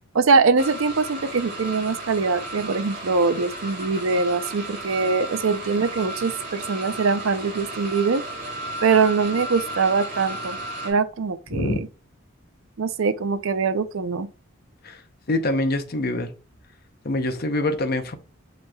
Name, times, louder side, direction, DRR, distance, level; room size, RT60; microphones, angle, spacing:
voice 1, 0.1-8.2 8.8-10.6 10.8-11.7 12.8-14.3, right 4 dB, 70° right, 0.5 m, -22 dB
sound 1, 0.6-10.9, right 1 dB, 35° right, 1.7 m, -34 dB
voice 2, 15.3-16.3 17.0-18.2, left 2 dB, 45° left, 0.7 m, -24 dB
7.5 x 3.1 x 2.3 m
head